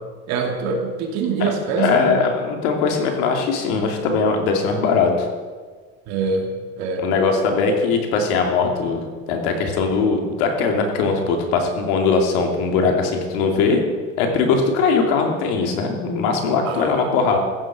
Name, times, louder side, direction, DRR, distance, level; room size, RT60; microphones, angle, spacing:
voice 1, 0.3-2.2 6.1-6.5 6.8-7.0 16.7-17.1, right 5 dB, 55° right, 1 dB, 2.7 m, -24 dB
voice 2, 1.8-5.3 7.0-13.8 14.2-17.4, left 4 dB, 80° left, 3 dB, 2.8 m, -20 dB
15.0 x 7.7 x 7.4 m, 1.5 s
cardioid pair, 160°, 31 cm